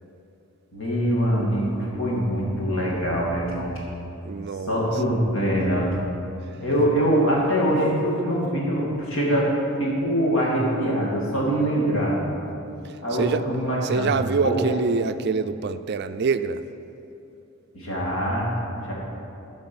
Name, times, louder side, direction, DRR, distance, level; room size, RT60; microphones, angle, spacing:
voice 1, 0.7-3.7 4.7-5.9 6.6-9.5 9.8-12.2 13.0-14.6 17.7-18.5 18.8-18.9, equal, 60° left, -4 dB, 2.5 m, -23 dB
voice 2, 4.2-5.0 12.8-13.4 13.8-16.6, right 5 dB, 50° right, 11 dB, 0.4 m, -26 dB
10.5 x 5.1 x 7.1 m, 2.9 s
head